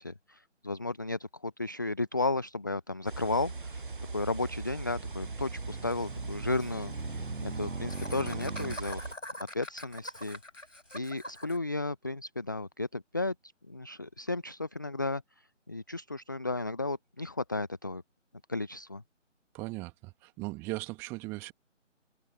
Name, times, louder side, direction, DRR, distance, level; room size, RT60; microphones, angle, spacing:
voice 1, 0.0-3.8 4.1-9.0 9.5-10.4 10.9-18.0 18.5-19.0, left 2 dB, 15° left, 0.9 m, -34 dB
sound 1, 3.1-9.2, right 3 dB, 40° right, 1.2 m, -40 dB
sound 2, 3.4-8.8, right 3 dB, 75° right, 1.8 m, -42 dB
Laughter, 5.9-6.0 6.2-6.3 6.5-6.7 7.9-11.6, equal, 85° left, 4.9 m, -43 dB
voice 2, 19.5-21.5, right 23 dB, 5° right, 1.9 m, -38 dB
figure-of-eight pair, 155°, 38 cm